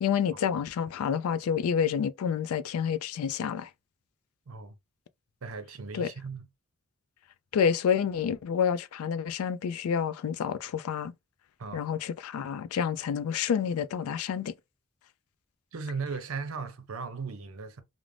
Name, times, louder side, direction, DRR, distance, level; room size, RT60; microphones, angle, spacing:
voice 1, 0.0-3.7 5.9-6.1 7.5-11.1 11.7-14.5, left 7 dB, 90° left, 0.3 m, -28 dB
voice 2, 4.5-4.8 5.4-6.5 11.6-11.9 15.7-17.8, right 4 dB, 75° right, 0.6 m, -37 dB
2.5 x 2.0 x 3.1 m
head